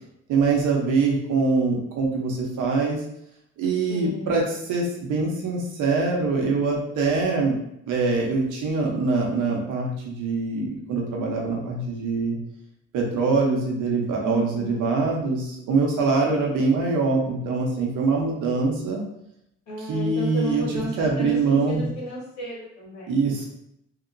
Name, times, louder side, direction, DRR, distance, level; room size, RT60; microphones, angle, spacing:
voice 1, 0.3-3.0 3.6-7.6 7.9-12.4 12.9-19.0 19.8-20.6 21.0-21.9 23.1-23.4, right 4 dB, 85° right, -1 dB, 0.8 m, -24 dB
voice 2, 3.9-4.4 14.2-14.8 19.7-23.1, equal, 70° left, -8 dB, 1.4 m, -33 dB
3.0 x 2.8 x 2.6 m, 0.78 s
cardioid pair, 90°, 30 cm